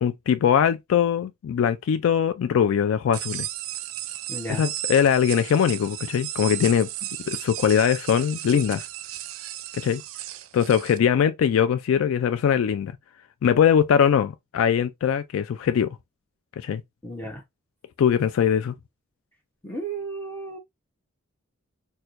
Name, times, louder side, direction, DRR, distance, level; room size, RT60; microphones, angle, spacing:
voice 1, 0.0-3.5 4.5-6.9 7.3-8.9 9.8-10.0 10.5-12.9 13.4-15.9 16.6-16.8 18.0-18.7, left 8 dB, 80° left, 0.3 m, -21 dB
sound 1, 3.1-11.0, right 13 dB, 90° right, 0.4 m, -35 dB
voice 2, 4.3-4.7 17.0-17.4 19.6-20.6, right 2 dB, 10° left, 0.8 m, -33 dB
4.4 x 2.2 x 2.5 m
head